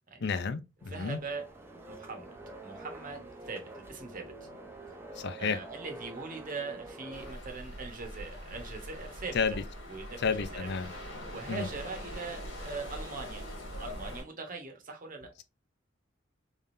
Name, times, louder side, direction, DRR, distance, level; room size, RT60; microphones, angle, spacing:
voice 1, 0.2-1.2 5.2-5.6 9.3-9.5 10.2-10.9 11.5-11.7, left 5 dB, 60° left, 0.5 m, -31 dB
sound 1, 0.8-7.3, right 2 dB, 10° right, 0.8 m, -47 dB
voice 2, 0.9-1.5 1.9-2.4 2.6-4.5 5.4-9.4 9.9-10.7 11.3-15.3, right 4 dB, 45° right, 1.1 m, -41 dB
sound 2, 7.1-14.2, equal, 85° left, 1.8 m, -42 dB
3.6 x 3.5 x 2.6 m
head